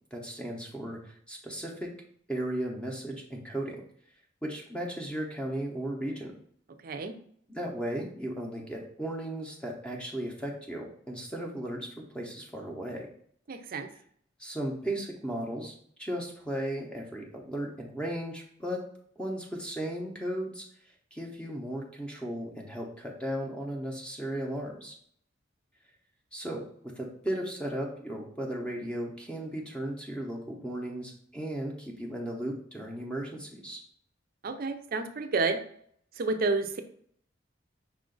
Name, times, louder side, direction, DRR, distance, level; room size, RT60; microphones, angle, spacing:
voice 1, 0.1-1.9 2.3-3.8 4.4-6.3 7.5-13.1 14.4-18.8 19.2-20.6 21.1-25.0 26.3-26.6 27.0-33.8, right 1 dB, 5° left, 0 dB, 0.7 m, -36 dB
voice 2, 6.8-7.1 13.5-13.9 34.4-35.6 36.2-36.8, right 3 dB, 50° right, 8 dB, 0.5 m, -30 dB
5.6 x 2.5 x 3.8 m, 0.63 s
head